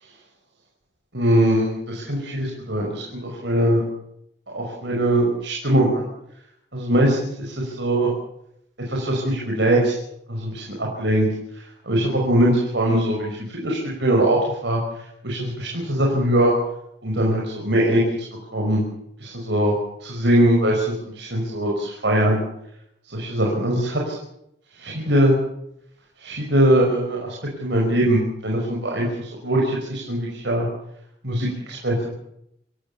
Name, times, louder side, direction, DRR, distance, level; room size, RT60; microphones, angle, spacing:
voice 1, 1.1-3.8 4.5-6.0 6.7-8.1 8.9-10.0 10.3-11.3 11.9-14.8 15.2-16.5 17.0-18.1 18.5-18.8 19.2-19.7 20.0-22.4 23.1-24.2 24.8-25.4 26.2-27.3 27.6-30.7 31.2-32.1, right 1 dB, 70° right, -2 dB, 5.6 m, -21 dB
26.5 x 16.5 x 6.9 m, 0.77 s
head